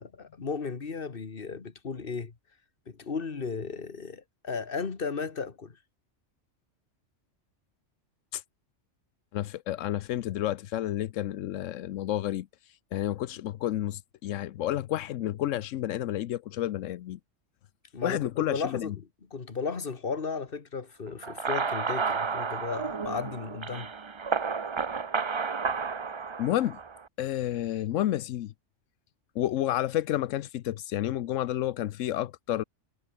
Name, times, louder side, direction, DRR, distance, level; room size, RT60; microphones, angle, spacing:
voice 1, 0.0-2.3 2.9-5.8 17.9-18.9 19.3-23.9, left 5 dB, 50° left, 1.8 m, -35 dB
voice 2, 9.3-17.2 18.0-19.0 26.4-26.8 27.2-28.5 29.3-32.6, left 13 dB, 85° left, 1.0 m, -30 dB
sound 1, 21.2-27.0, right 5 dB, 30° right, 0.6 m, -31 dB
omnidirectional pair, 1.3 m